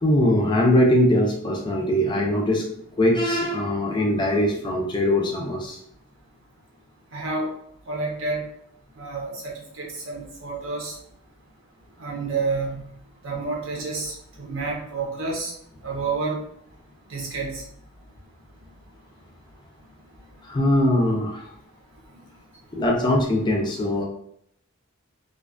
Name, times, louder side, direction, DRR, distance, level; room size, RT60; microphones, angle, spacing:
voice 1, 0.0-2.7 3.0-5.8 20.4-21.4 22.7-24.0, left 1 dB, 20° left, -1 dB, 0.4 m, -21 dB
voice 2, 7.1-7.5 7.9-8.4 9.0-9.5 9.8-10.9 12.0-12.8 13.2-15.5 15.8-16.4 17.1-17.6, right 3 dB, 70° right, -2 dB, 0.8 m, -29 dB
2.4 x 2.3 x 2.4 m, 0.68 s
head